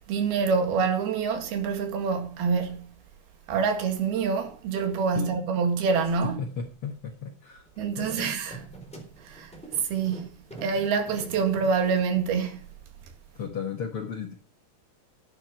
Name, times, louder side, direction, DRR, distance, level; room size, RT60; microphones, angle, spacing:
voice 1, 0.0-3.0 3.5-6.4 7.8-8.6 9.3-9.5 9.9-10.4 10.6-12.7, right 5 dB, 75° right, 3.8 m, -26 dB
voice 2, 6.4-7.7 8.0-8.3 13.3-14.4, left 6 dB, 85° left, 1.2 m, -35 dB
sound 1, 7.7-12.8, right 3 dB, ahead, 3.3 m, -45 dB
11.5 x 9.1 x 5.8 m
omnidirectional pair, 4.6 m